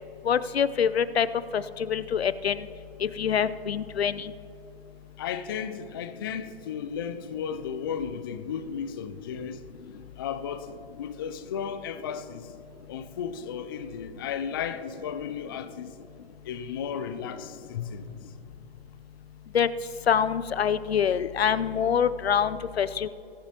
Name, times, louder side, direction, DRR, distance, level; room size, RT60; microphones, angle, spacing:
voice 1, 0.2-1.3 1.5-2.7 3.0-4.3 19.5-19.7 20.1-23.1, left 8 dB, 75° left, 0.6 m, -25 dB
voice 2, 5.2-9.6 10.2-10.7 11.0-12.5 12.9-15.9 16.4-18.2, left 7 dB, 25° left, 0.3 m, -34 dB
21.5 x 9.5 x 2.9 m
figure-of-eight pair, 130°, 32 cm